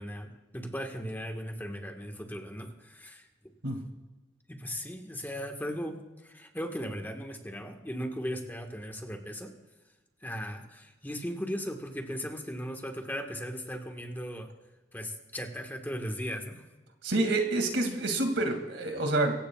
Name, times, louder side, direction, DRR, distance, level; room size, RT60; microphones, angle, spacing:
voice 1, 0.0-3.3 4.5-9.5 10.2-14.5 14.9-16.7, equal, 10° left, 3 dB, 1.4 m, -37 dB
voice 2, 17.0-19.3, right 2 dB, 85° right, 5 dB, 2.3 m, -28 dB
24.5 x 16.0 x 2.3 m, 1.1 s
head